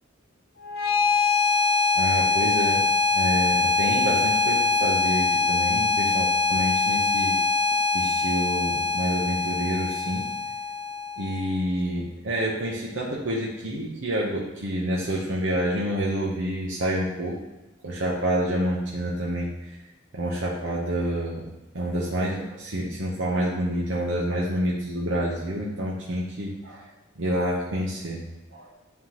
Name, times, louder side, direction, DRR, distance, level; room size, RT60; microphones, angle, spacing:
sound 1, 0.6-11.6, left 3 dB, 50° left, 0.8 m, -23 dB
voice 1, 1.9-2.8 3.1-7.4 7.9-10.2 11.2-17.4 17.8-19.7 20.1-21.5 21.7-26.9 27.2-28.2 28.5-28.7, right 1 dB, 65° right, -4 dB, 0.9 m, -28 dB
9.6 x 3.7 x 3.0 m, 1.1 s
head